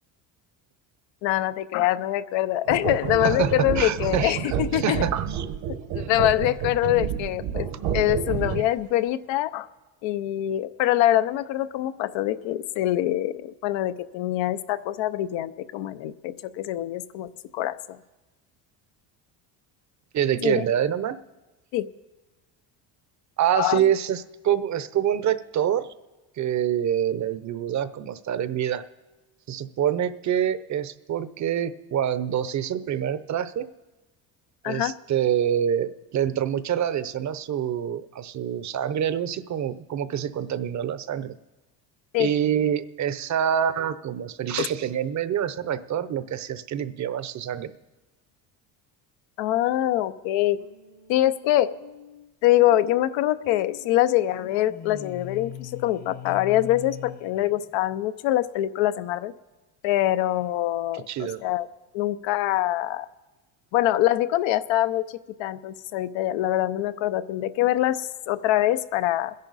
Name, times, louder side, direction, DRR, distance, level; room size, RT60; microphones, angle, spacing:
voice 1, 1.2-5.1 5.7-7.7 7.9-9.7 10.0-18.0 20.4-20.6 21.7-21.9 23.5-23.8 34.6-34.9 42.1-42.3 43.5-43.7 44.6-44.7 49.4-50.6 51.1-51.8 52.4-59.3 59.8-61.7 61.9-63.1 63.7-69.3, left 14 dB, 70° left, 14 dB, 0.8 m, -24 dB
sound 1, 2.6-8.8, right 8 dB, 75° right, 1.4 m, -30 dB
voice 2, 3.8-4.3 4.7-5.5 6.0-6.1 20.1-21.2 23.4-25.9 26.4-28.8 29.5-33.7 34.6-41.3 42.2-47.7 61.1-61.4, right 9 dB, 40° right, 14 dB, 0.7 m, -26 dB
sound 2, 50.5-58.1, left 10 dB, 35° left, 1.0 m, -43 dB
28.0 x 10.5 x 4.1 m, 1.1 s
cardioid pair, 115°, 46 cm